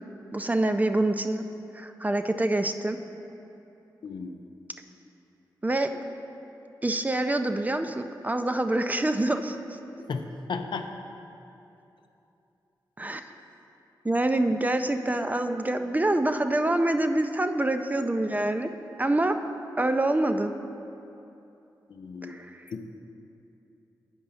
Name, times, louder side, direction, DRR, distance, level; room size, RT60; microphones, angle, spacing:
voice 1, 0.3-1.5 1.7-3.0 5.6-6.0 6.8-9.6 13.0-13.2 14.0-18.7 19.0-19.4 19.8-20.6 22.2-22.6, right 1 dB, 20° right, 8 dB, 0.4 m, -26 dB
voice 2, 4.0-4.4 10.0-10.2 10.5-10.9 21.9-22.4 22.7-22.8, left 5 dB, 75° left, 6 dB, 0.5 m, -34 dB
8.0 x 5.1 x 5.6 m, 2.8 s
cardioid pair, 55°, 8 cm